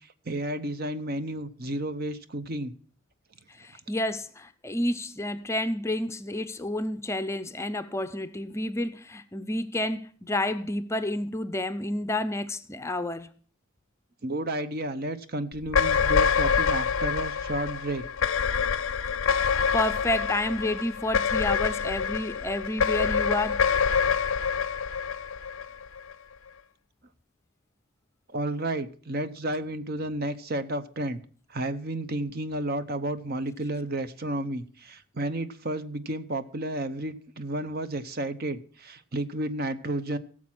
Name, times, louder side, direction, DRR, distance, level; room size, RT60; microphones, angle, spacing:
voice 1, 0.3-2.7 14.2-18.0 28.3-31.2 31.5-40.2, right 1 dB, 50° right, 0.9 m, -32 dB
voice 2, 3.6-13.3 19.7-23.7, left 1 dB, 15° left, 0.5 m, -30 dB
sound 1, 15.6-26.1, left 6 dB, 75° left, 0.5 m, -26 dB
16.5 x 7.4 x 6.0 m
head